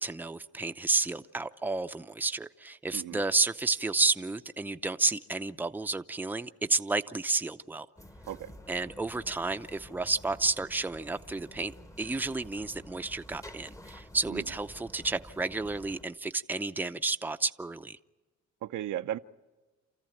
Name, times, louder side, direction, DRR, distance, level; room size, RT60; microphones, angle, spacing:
voice 1, 0.0-7.9 8.7-18.0, right 3 dB, 5° right, 9 dB, 0.6 m, -31 dB
sound 1, 8.0-16.0, left 1 dB, 10° left, 0.9 m, -50 dB
voice 2, 18.6-19.2, right 12 dB, 80° right, 10 dB, 0.8 m, -35 dB
28.0 x 14.0 x 9.0 m, 1.2 s
cardioid pair, 90°, 30 cm